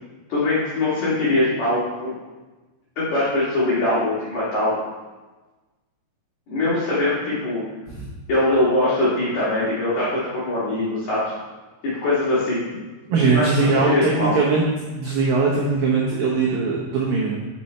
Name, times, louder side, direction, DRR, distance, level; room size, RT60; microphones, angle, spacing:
voice 1, 0.3-2.1 3.0-4.8 6.5-7.6 8.3-11.3 11.8-12.6 13.2-14.4, left 2 dB, 60° left, -10 dB, 2.0 m, -22 dB
voice 2, 13.1-14.6 14.9-17.4, right 4 dB, 90° right, -4 dB, 2.0 m, -20 dB
7.0 x 5.3 x 4.3 m, 1.2 s
omnidirectional pair, 5.5 m